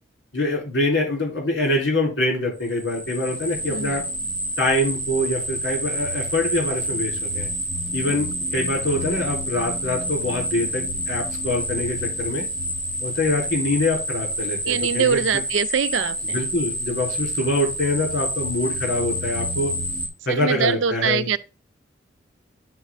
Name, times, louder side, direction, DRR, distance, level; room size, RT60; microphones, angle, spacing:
voice 1, 0.3-4.1 4.6-7.5 7.9-12.4 13.0-15.4 16.2-19.7 20.2-21.3, left 1 dB, 70° left, 3.5 m, -25 dB
sound 1, 2.7-20.1, equal, 5° left, 2.3 m, -28 dB
voice 2, 3.7-4.0 8.1-8.3 14.7-16.4 20.3-21.4, right 7 dB, 80° right, 0.4 m, -23 dB
9.1 x 4.3 x 3.6 m
head